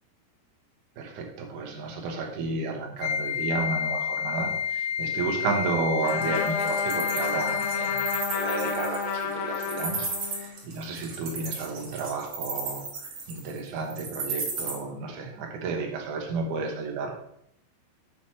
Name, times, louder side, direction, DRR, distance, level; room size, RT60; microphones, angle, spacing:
voice 1, 1.0-8.0 8.3-17.2, right 4 dB, 65° right, 1 dB, 2.2 m, -32 dB
Wind instrument woodwind instrument, 3.0-8.4, left 7 dB, 85° left, 2.9 m, -30 dB
Trumpet, 6.0-10.6, left 5 dB, 70° left, 2.3 m, -31 dB
Wild animals, 6.1-14.7, right 4 dB, 90° right, 1.1 m, -34 dB
7.5 x 6.4 x 4.4 m, 0.72 s
omnidirectional pair, 5.1 m